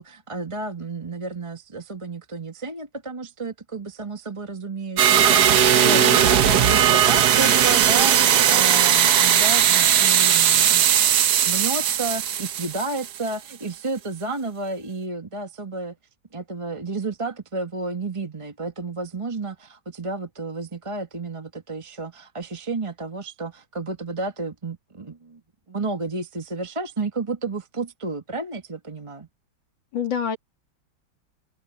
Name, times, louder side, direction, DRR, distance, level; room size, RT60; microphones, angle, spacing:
voice 1, 0.0-10.9 11.4-15.9 16.3-25.4 25.7-29.3, right 3 dB, 20° right, 1.4 m, -31 dB
sound 1, 5.0-13.3, right 9 dB, 60° right, 1.4 m, -18 dB
voice 2, 5.8-6.2 29.9-30.4, left 8 dB, 75° left, 3.0 m, -27 dB
omnidirectional pair, 2.1 m